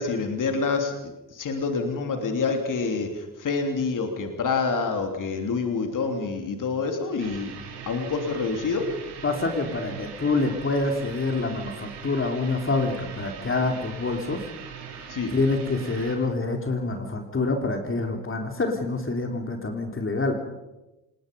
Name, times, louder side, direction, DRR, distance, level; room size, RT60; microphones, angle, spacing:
voice 1, 0.0-7.5 7.9-8.9 15.1-15.3, left 4 dB, 40° left, 5 dB, 3.2 m, -27 dB
sound 1, 7.2-16.1, right 8 dB, 60° right, 6.6 m, -40 dB
voice 2, 9.2-14.4 15.3-20.3, left 3 dB, 25° left, 4 dB, 3.5 m, -26 dB
27.5 x 19.5 x 5.4 m, 0.99 s
hypercardioid pair, 55°, 45 cm